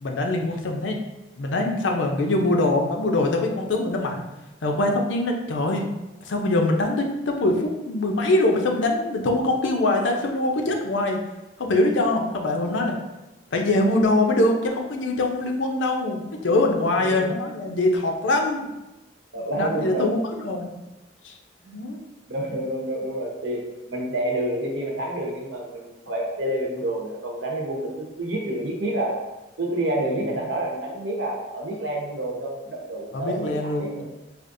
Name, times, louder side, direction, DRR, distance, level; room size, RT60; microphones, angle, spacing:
voice 1, 0.0-1.0 1.4-4.2 4.6-5.8 6.3-11.2 11.6-13.0 13.5-18.7 19.6-20.7 21.2-21.3 21.7-22.0 33.1-34.0, left 2 dB, 90° left, 2 dB, 0.6 m, -23 dB
voice 2, 16.9-17.3 19.3-20.1 21.6-21.8 22.3-29.2 29.6-34.0, right 1 dB, 85° right, -2 dB, 0.9 m, -28 dB
4.9 x 2.4 x 2.6 m, 1.0 s
head